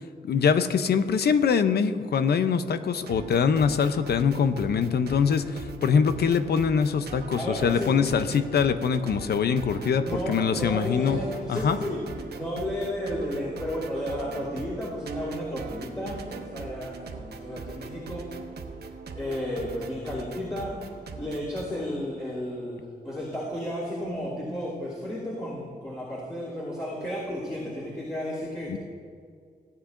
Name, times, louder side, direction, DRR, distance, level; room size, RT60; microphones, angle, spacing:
voice 1, 0.2-11.2 11.5-11.8 28.7-28.8, left 6 dB, 75° left, 11 dB, 0.6 m, -23 dB
sound 1, 3.0-21.6, right 4 dB, 75° right, 0.9 m, -40 dB
voice 2, 7.3-7.9 10.0-12.0 12.3-18.2 19.1-20.7 21.2-28.8, equal, 20° left, -10 dB, 2.9 m, -33 dB
16.5 x 9.9 x 2.6 m, 2.2 s
wide cardioid pair, 135°, 17 cm